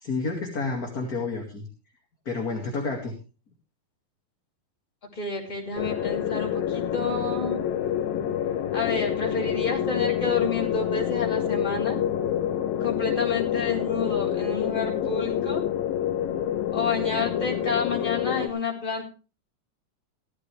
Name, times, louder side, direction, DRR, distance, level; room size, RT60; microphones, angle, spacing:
voice 1, 0.0-1.7 2.3-3.1, left 3 dB, 30° left, 1 dB, 2.3 m, -30 dB
voice 2, 5.1-7.6 8.7-12.0 12.8-15.6 16.7-19.1, left 4 dB, 15° left, -2 dB, 3.9 m, -30 dB
sound 1, 5.8-18.5, left 10 dB, 85° left, 2.9 m, -27 dB
15.5 x 13.5 x 3.4 m, 0.33 s
omnidirectional pair, 4.0 m